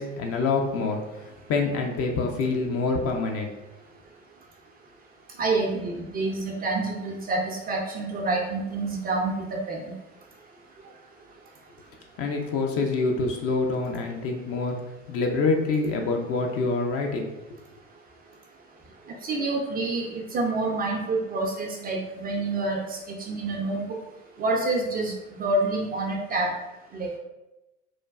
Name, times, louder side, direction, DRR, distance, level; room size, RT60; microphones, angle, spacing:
voice 1, 0.0-3.5 12.2-14.8 15.1-17.3, left 3 dB, 40° left, 2 dB, 0.5 m, -26 dB
voice 2, 5.4-9.8 19.2-24.0 24.4-26.5 26.9-27.1, right 2 dB, 25° right, 0 dB, 0.4 m, -27 dB
3.1 x 2.2 x 2.3 m, 0.99 s
figure-of-eight pair, 65°, 38 cm